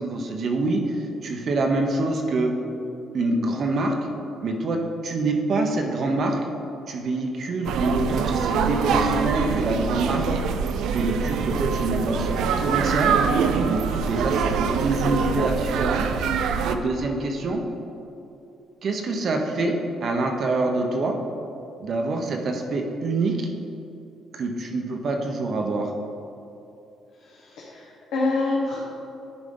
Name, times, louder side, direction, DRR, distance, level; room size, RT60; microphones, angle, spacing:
voice 1, 0.0-2.5 3.1-4.0 4.4-6.5 6.9-13.2 13.6-16.1 16.6-17.6 18.8-21.2 21.8-23.5 24.3-25.9, right 2 dB, 45° right, 3 dB, 0.8 m, -26 dB
sound 1, 7.6-16.7, right 6 dB, 80° right, 0.4 m, -24 dB
voice 2, 27.3-28.8, left 3 dB, 70° left, -5 dB, 1.2 m, -26 dB
10.0 x 4.9 x 3.8 m, 2.7 s
cardioid pair, 150°, 0 cm